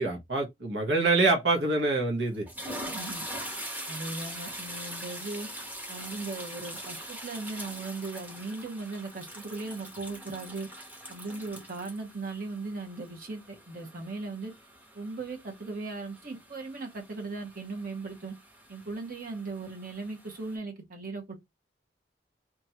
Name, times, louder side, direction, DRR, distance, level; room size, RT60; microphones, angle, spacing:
voice 1, 0.0-2.4, right 3 dB, 85° right, 0.9 m, -25 dB
sound 1, 1.7-1.9 2.3-20.6, right 1 dB, 10° right, 0.7 m, -43 dB
voice 2, 2.9-3.2 3.9-5.5 5.9-10.7 11.1-14.5 14.9-18.3 18.7-21.4, right 3 dB, 55° right, 1.1 m, -38 dB
2.9 x 2.4 x 2.8 m
head